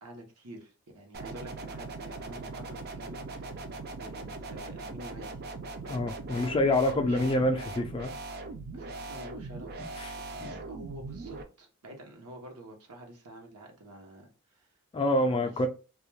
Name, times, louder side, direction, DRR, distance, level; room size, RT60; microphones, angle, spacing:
voice 1, 0.0-3.6 4.0-5.4 7.0-7.3 8.7-9.9 10.2-14.7 15.2-15.6, right 1 dB, 85° right, 0.8 m, -48 dB
sound 1, 1.1-11.4, right 3 dB, 45° right, 0.4 m, -40 dB
voice 2, 5.9-8.1 10.0-10.1 10.4-10.6 14.9-15.7, left 1 dB, 25° left, 0.3 m, -27 dB
2.3 x 2.2 x 3.1 m
head